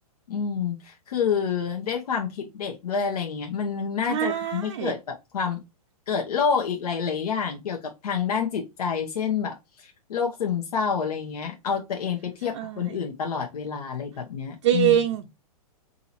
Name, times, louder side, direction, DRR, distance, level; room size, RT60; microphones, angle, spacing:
voice 1, 0.3-5.6 6.1-7.8 8.0-15.0, left 6 dB, 75° left, 1.1 m, -28 dB
voice 2, 4.1-4.9 12.5-12.8 14.6-15.3, right 11 dB, 50° right, 0.5 m, -23 dB
3.8 x 2.9 x 4.2 m
hypercardioid pair, 150°, 20 cm